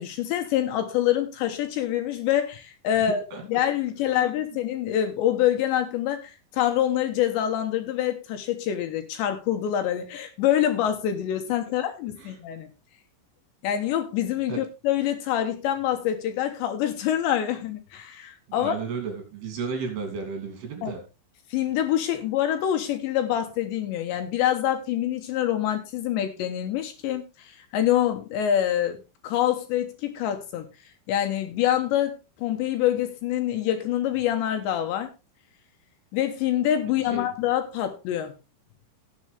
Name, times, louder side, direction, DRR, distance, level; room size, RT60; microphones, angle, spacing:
voice 1, 0.0-3.2 3.5-12.7 13.6-18.7 20.8-20.9 21.5-30.7 31.1-35.1 36.1-38.3, left 11 dB, 70° left, 6 dB, 3.1 m, -26 dB
voice 2, 3.0-3.4 4.1-4.3 12.2-12.3 14.5-14.6 18.5-21.0 37.0-37.3, right 5 dB, 60° right, 4 dB, 4.6 m, -34 dB
17.5 x 7.5 x 3.4 m, 0.27 s
omnidirectional pair, 5.7 m